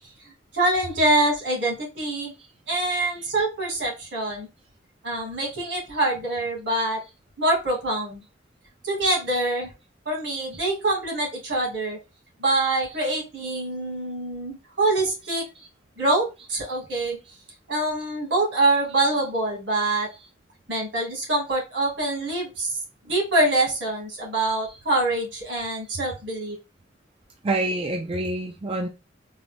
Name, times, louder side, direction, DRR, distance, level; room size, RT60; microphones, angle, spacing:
voice 1, 0.2-2.3 2.7-4.5 5.0-7.0 7.4-8.2 8.8-9.7 10.1-12.0 12.4-15.4 16.0-17.2 17.7-20.1 20.7-22.8 23.1-26.6, right 2 dB, 70° right, 1.9 m, -25 dB
voice 2, 27.4-28.9, right 2 dB, 30° right, 0.4 m, -28 dB
3.8 x 2.6 x 3.4 m
head